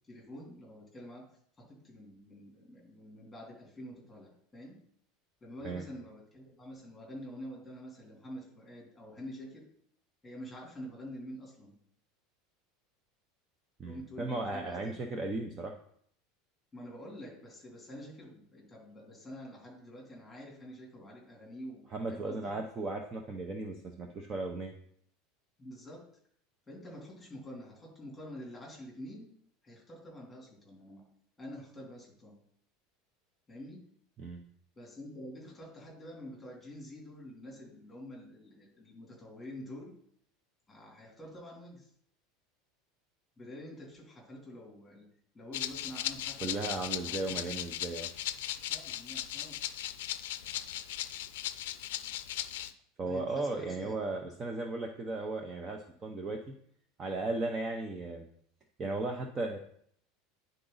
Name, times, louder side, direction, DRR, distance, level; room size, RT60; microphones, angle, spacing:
voice 1, 0.1-1.2 1.7-4.8 5.4-9.6 10.2-11.8 13.8-15.0 16.7-21.8 22.1-22.5 25.6-26.0 26.7-29.3 29.6-31.0 31.4-32.3 33.5-33.8 34.8-39.9 40.7-41.9 43.4-45.1 45.3-47.4 48.7-49.6 53.1-54.0, equal, 5° left, -3 dB, 2.8 m, -47 dB
voice 2, 13.8-15.7 21.9-24.7 34.2-34.4 46.4-48.1 53.0-56.4 57.0-58.3 58.8-59.6, right 2 dB, 20° right, 3 dB, 0.6 m, -36 dB
Rattle (instrument), 45.5-52.7, left 13 dB, 85° left, 0.4 m, -38 dB
9.9 x 3.9 x 3.9 m, 0.65 s
supercardioid pair, 160°, 0 cm